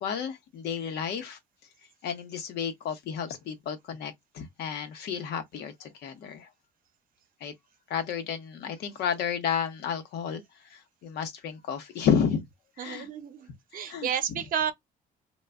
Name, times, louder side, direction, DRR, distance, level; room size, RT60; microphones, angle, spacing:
voice 1, 0.0-1.4 2.0-6.5 7.4-7.5 7.9-10.4 10.7-12.4 12.8-13.1 13.9-14.1, left 7 dB, 75° left, 0.9 m, -31 dB
voice 2, 12.8-14.7, right 8 dB, 55° right, 0.7 m, -31 dB
2.3 x 2.1 x 3.5 m
cardioid pair, 110°, 17 cm